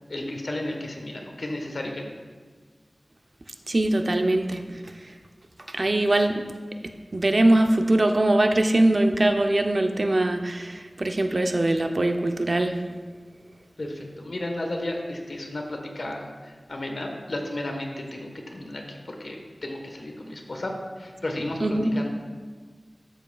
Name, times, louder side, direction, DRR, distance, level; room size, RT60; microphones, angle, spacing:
voice 1, 0.1-2.1 13.8-22.1, left 1 dB, 75° left, 2 dB, 1.2 m, -33 dB
voice 2, 3.7-4.8 5.7-6.4 7.1-12.8 21.6-21.9, right 1 dB, 55° right, 5 dB, 0.6 m, -22 dB
13.0 x 7.4 x 2.3 m, 1.5 s
wide cardioid pair, 50°, 0 cm